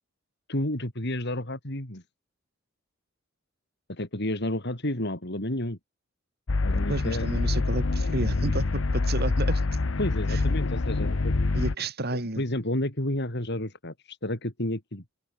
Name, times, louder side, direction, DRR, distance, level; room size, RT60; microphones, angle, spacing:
voice 1, 0.5-2.0 3.9-5.8 6.6-7.3 10.0-11.3 12.1-15.0, left 1 dB, 60° left, 5.0 m, -31 dB
sound 1, 6.5-11.7, left 3 dB, 75° left, 0.8 m, -26 dB
voice 2, 6.9-9.6 10.3-10.4 11.5-12.4, right 1 dB, 55° right, 5.7 m, -31 dB
head